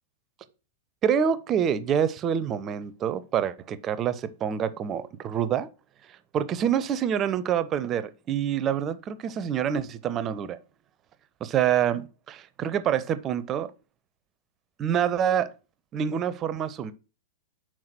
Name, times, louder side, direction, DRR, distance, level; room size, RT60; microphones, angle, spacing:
voice 1, 1.0-5.7 6.3-10.6 11.4-13.7 14.8-15.5 15.9-16.9, right 9 dB, 30° right, 0.5 m, -26 dB
5.8 x 4.5 x 6.0 m
figure-of-eight pair, 100°, 0 cm